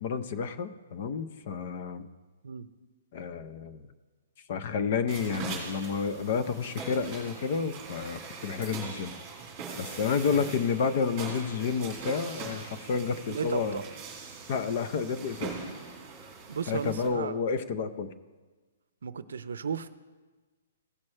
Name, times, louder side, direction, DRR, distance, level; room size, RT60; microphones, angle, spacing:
voice 1, 0.0-2.1 3.1-3.9 4.5-9.1 9.8-13.8 14.5-15.6 16.7-18.1, left 5 dB, 35° left, 13 dB, 0.6 m, -30 dB
sound 1, 5.1-17.1, right 5 dB, 20° right, 2.2 m, -41 dB
voice 2, 13.3-13.8 16.5-17.4 19.0-19.9, right 6 dB, 80° right, 14 dB, 0.6 m, -34 dB
16.0 x 6.1 x 3.3 m, 1.3 s
hypercardioid pair, 175°, 0 cm